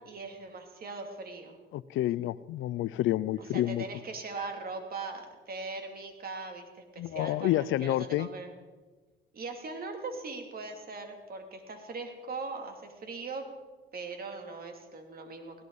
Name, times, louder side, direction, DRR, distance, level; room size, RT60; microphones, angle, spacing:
voice 1, 0.0-1.6 3.4-8.5 9.3-13.5 13.9-15.6, right 3 dB, 50° right, 3 dB, 2.9 m, -40 dB
voice 2, 1.7-3.8 7.0-8.3, left 14 dB, 80° left, 19 dB, 0.5 m, -29 dB
17.5 x 17.0 x 4.1 m, 1.3 s
cardioid pair, 90°, 20 cm